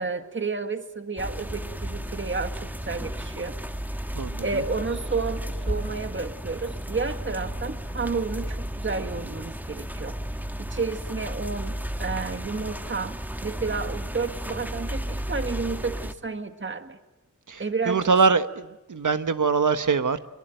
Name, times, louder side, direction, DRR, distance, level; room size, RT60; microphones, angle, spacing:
voice 1, 0.0-3.5 4.4-10.2 10.6-17.0 17.6-18.1, right 4 dB, 40° right, 1.8 m, -31 dB
sound 1, 1.2-16.1, equal, 5° right, 1.4 m, -33 dB
voice 2, 4.1-4.6 17.5-20.2, right 5 dB, 80° right, 1.3 m, -23 dB
24.5 x 23.5 x 9.1 m
wide cardioid pair, 90°, 30 cm